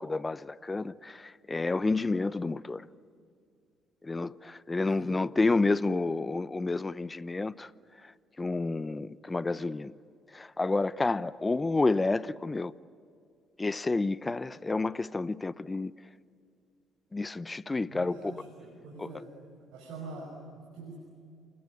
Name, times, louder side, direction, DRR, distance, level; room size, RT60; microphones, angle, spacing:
voice 1, 0.0-2.8 4.0-7.7 8.4-9.9 10.3-12.7 13.6-15.9 17.1-18.2 19.0-19.1, left 3 dB, 25° left, 0.8 m, -30 dB
voice 2, 17.9-19.3 19.7-20.9, right 3 dB, 75° right, 5.8 m, -44 dB
28.5 x 21.0 x 9.5 m
hypercardioid pair, 55°, 0 cm